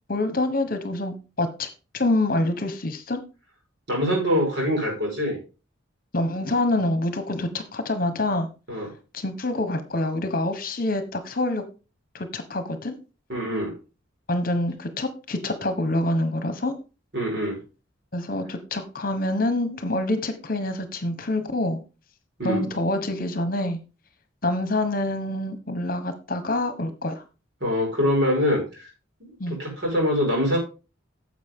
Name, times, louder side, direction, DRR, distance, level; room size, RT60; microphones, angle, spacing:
voice 1, 0.1-1.7 1.9-3.2 6.1-8.5 9.1-11.6 12.1-13.0 14.3-16.7 18.1-21.8 22.4-23.8 24.4-27.2 29.4-29.6, left 1 dB, 45° left, 9 dB, 1.3 m, -26 dB
voice 2, 3.9-5.4 8.7-8.9 13.3-13.7 17.1-17.6 22.4-22.6 27.6-28.9 29.2-30.6, equal, 55° right, 0 dB, 5.5 m, -24 dB
10.5 x 7.4 x 3.7 m, 0.32 s
head